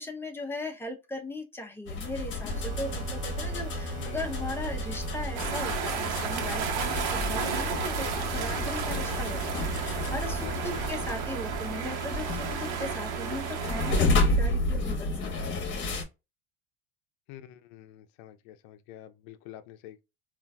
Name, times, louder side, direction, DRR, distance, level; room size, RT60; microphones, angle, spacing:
voice 1, 0.0-15.1, left 2 dB, 5° left, 0.7 m, -38 dB
sound 1, 1.9-16.0, left 2 dB, 40° left, 1.0 m, -31 dB
sound 2, 2.5-13.9, right 9 dB, 25° right, 1.3 m, -39 dB
voice 2, 3.9-4.3 10.4-10.9 17.3-20.0, left 12 dB, 65° left, 0.6 m, -47 dB
sound 3, 5.4-14.0, right 5 dB, 60° right, 1.1 m, -33 dB
3.8 x 2.5 x 2.3 m
supercardioid pair, 115°, 32 cm